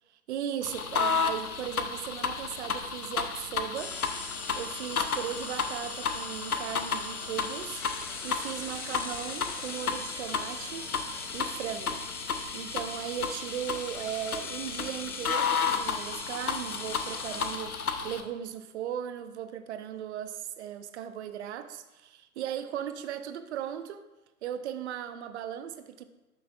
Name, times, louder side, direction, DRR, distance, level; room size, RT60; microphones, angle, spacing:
voice 1, 0.3-4.0 4.6-10.9 11.3-24.1 24.4-26.0, right 10 dB, 50° right, 11 dB, 0.8 m, -37 dB
sound 1, 0.6-18.2, left 6 dB, 75° left, 0.9 m, -33 dB
sound 2, 3.7-17.5, left 3 dB, 5° left, 0.4 m, -41 dB
12.0 x 9.5 x 2.4 m, 1.1 s
figure-of-eight pair, 100°, 44 cm